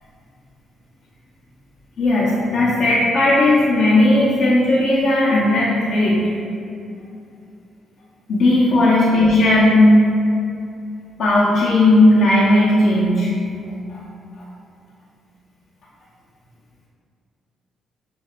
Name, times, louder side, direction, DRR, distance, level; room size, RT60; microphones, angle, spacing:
voice 1, 2.0-6.2 8.3-10.0 11.2-13.3 13.9-14.0, left 1 dB, 65° left, -9 dB, 0.8 m, -15 dB
7.3 x 2.6 x 2.4 m, 2.5 s
cardioid pair, 90°, 0 cm